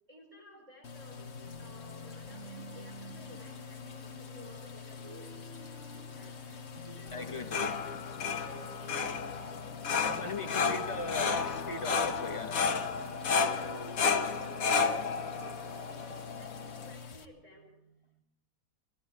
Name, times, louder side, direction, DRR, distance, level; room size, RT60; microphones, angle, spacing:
voice 1, 0.1-1.2 1.6-5.4 5.7-6.4 6.8-9.1 9.7-10.7 11.2-11.7 12.6-12.9 13.2-15.1 15.4-18.2, equal, 20° right, 4.3 m, -55 dB
sound 1, 0.8-17.2, left 6 dB, 50° left, 1.3 m, -46 dB
sound 2, 1.1-15.1, right 1 dB, 55° right, 6.6 m, -52 dB
voice 2, 7.1-7.8 9.9-12.6, left 3 dB, 25° left, 1.0 m, -39 dB
sound 3, 7.2-16.9, left 5 dB, 65° left, 1.6 m, -32 dB
29.0 x 19.0 x 4.7 m
omnidirectional pair, 1.6 m